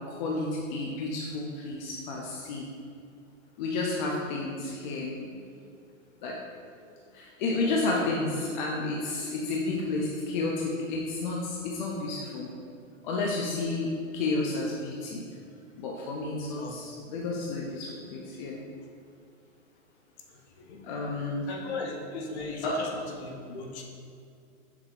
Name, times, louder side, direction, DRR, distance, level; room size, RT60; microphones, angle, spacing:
voice 1, 0.1-2.6 3.6-5.7 6.2-6.4 7.1-12.5 13.0-13.9 14.1-15.2 15.8-18.6 20.7-21.7 22.6-22.8 23.1-23.3, left 3 dB, 35° left, -2 dB, 0.4 m, -31 dB
voice 2, 21.5-22.9 23.2-23.8, left 3 dB, 50° left, 1 dB, 0.9 m, -37 dB
6.7 x 3.2 x 2.4 m, 2.4 s
hypercardioid pair, 135°, 41 cm